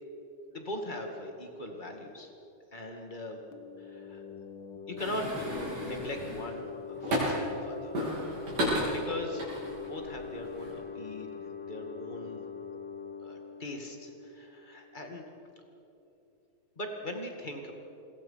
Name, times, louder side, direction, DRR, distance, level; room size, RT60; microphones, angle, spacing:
voice 1, 0.5-2.3 2.7-3.4 3.8-4.2 4.9-7.9 8.6-9.5 9.8-12.4 13.2-15.3 16.8-17.7, left 1 dB, 20° left, 3 dB, 1.7 m, -40 dB
sound 1, 3.5-14.9, left 7 dB, 50° left, 1.4 m, -43 dB
sound 2, 5.0-7.6 8.0-10.1 10.5-10.7, equal, 65° right, 9.4 m, -33 dB
27.5 x 22.0 x 5.8 m, 2.9 s
omnidirectional pair, 3.9 m